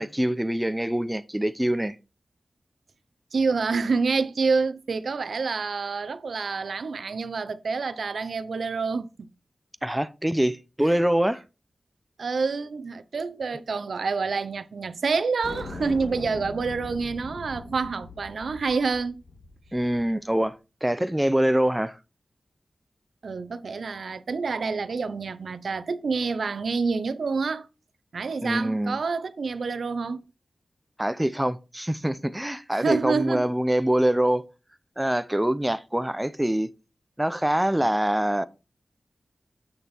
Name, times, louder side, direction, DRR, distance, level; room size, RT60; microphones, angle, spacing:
voice 1, 0.0-2.0 9.8-11.4 19.7-22.0 28.4-29.0 31.0-34.4 35.0-36.7 37.2-38.5, right 1 dB, 10° right, 0.7 m, -24 dB
voice 2, 3.3-9.3 12.2-19.2 23.2-27.7 28.1-30.2 32.7-33.5, right 4 dB, 75° right, 0.8 m, -27 dB
sound 1, 15.4-20.1, left 2 dB, 55° left, 3.7 m, -40 dB
8.4 x 6.6 x 4.4 m
wide cardioid pair, 110°, 0 cm